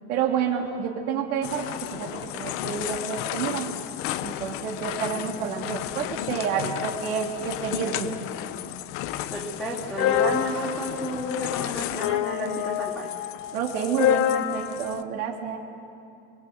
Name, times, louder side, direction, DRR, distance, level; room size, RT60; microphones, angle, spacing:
voice 1, 0.1-3.7 4.2-8.1 13.5-15.6, right 7 dB, 75° right, 1 dB, 3.3 m, -29 dB
sound 1, 1.4-15.0, left 12 dB, 30° left, 0.6 m, -30 dB
voice 2, 9.3-13.1, right 1 dB, ahead, -8 dB, 3.0 m, -31 dB
24.5 x 23.0 x 7.9 m, 2.6 s
supercardioid pair, 155°, 44 cm